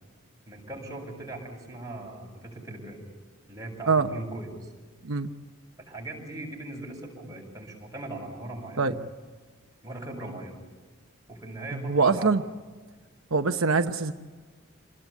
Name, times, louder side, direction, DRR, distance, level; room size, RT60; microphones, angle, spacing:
voice 1, 0.5-3.0 3.5-4.7 5.8-9.0 9.8-10.6 11.3-12.3, right 2 dB, 15° right, -2 dB, 7.4 m, -39 dB
voice 2, 11.7-12.4 13.3-14.1, right 4 dB, 75° right, 6 dB, 1.0 m, -23 dB
28.5 x 20.5 x 8.5 m, 1.4 s
head